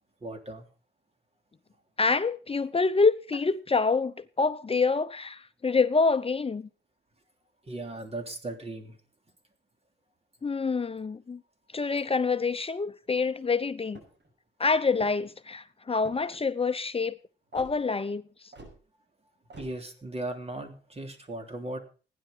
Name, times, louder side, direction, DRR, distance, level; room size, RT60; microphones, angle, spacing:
voice 1, 0.2-0.7 7.6-9.0 19.6-21.8, right 2 dB, 35° right, 3.3 m, -37 dB
voice 2, 2.0-6.7 10.4-11.4 11.7-14.0 14.6-17.2 17.5-18.2, left 4 dB, 30° left, 0.8 m, -26 dB
sound 1, 13.8-14.3 14.9-15.4 16.0-16.4 17.5-17.7 18.5-18.8 19.5-19.7, right 2 dB, 80° right, 6.0 m, -48 dB
15.5 x 10.5 x 5.4 m
cardioid pair, 95°, 18 cm